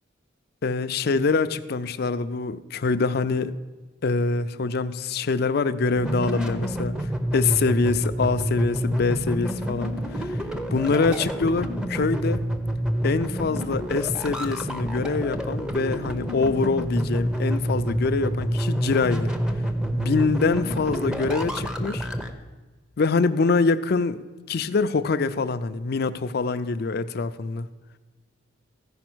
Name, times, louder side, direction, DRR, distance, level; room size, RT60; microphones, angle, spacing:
voice 1, 0.6-3.5 4.0-9.9 10.7-12.4 13.0-19.3 19.9-22.1 23.0-27.7, left 4 dB, 50° left, 12 dB, 0.4 m, -24 dB
sound 1, 5.9-22.3, equal, 5° right, 0.6 m, -28 dB
15.0 x 5.2 x 6.1 m, 1.3 s
head